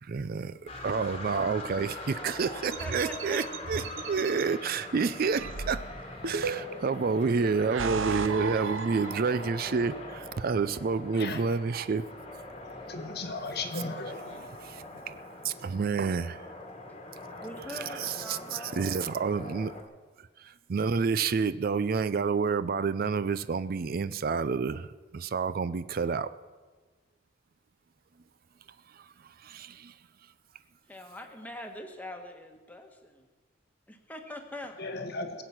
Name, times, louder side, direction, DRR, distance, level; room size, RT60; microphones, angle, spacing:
voice 1, 0.0-3.8 4.1-5.8 6.2-12.0 14.3-15.2 15.4-16.4 17.7-19.7 20.4-24.9 25.1-26.3 29.0-29.1 29.4-29.9, right 5 dB, 50° right, 14 dB, 0.4 m, -29 dB
sound 1, 0.7-19.8, left 2 dB, 30° left, 1.4 m, -43 dB
sound 2, 2.7-4.4 5.4-6.9 7.5-9.7, right 4 dB, 85° right, 0.8 m, -35 dB
voice 2, 2.8-3.5 17.4-18.8 30.9-33.2 33.9-34.8, left 1 dB, 10° left, 3 dB, 1.3 m, -42 dB
voice 3, 12.8-14.2 34.8-35.4, left 3 dB, 55° left, 8 dB, 1.4 m, -36 dB
21.0 x 8.0 x 5.9 m, 1.4 s
head